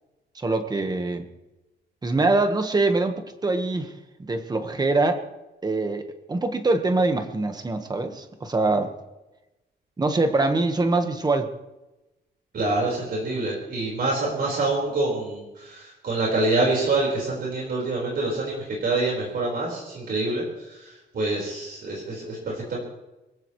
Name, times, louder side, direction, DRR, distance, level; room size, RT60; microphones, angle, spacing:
voice 1, 0.3-1.3 2.0-5.2 5.6-8.9 10.0-11.5, right 2 dB, 20° right, 7 dB, 1.4 m, -24 dB
voice 2, 12.5-22.8, right 2 dB, 55° right, -3 dB, 4.8 m, -26 dB
24.5 x 16.0 x 3.2 m, 1.0 s
wide cardioid pair, 170°, 18 cm